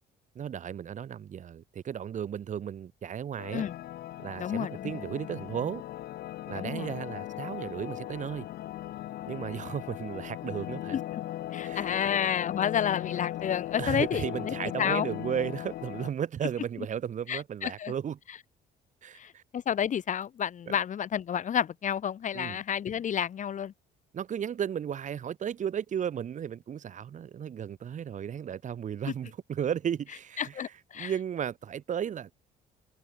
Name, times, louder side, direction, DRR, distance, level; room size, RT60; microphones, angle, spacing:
voice 1, 0.3-3.6 4.2-5.8 6.5-8.5 9.3-11.0 11.6-12.1 13.8-18.2 19.0-19.4 20.7-20.8 22.3-22.6 24.1-30.7 30.9-32.3, right 8 dB, 45° right, 2.8 m, -34 dB
sound 1, 3.4-16.1, left 14 dB, 70° left, 1.9 m, -38 dB
voice 2, 4.4-4.9 6.5-6.9 10.9-11.0 11.5-15.1 17.3-17.9 19.2-23.7 29.1-29.2 30.4-31.1, left 9 dB, 45° left, 3.3 m, -30 dB
cardioid pair, 110°, 17 cm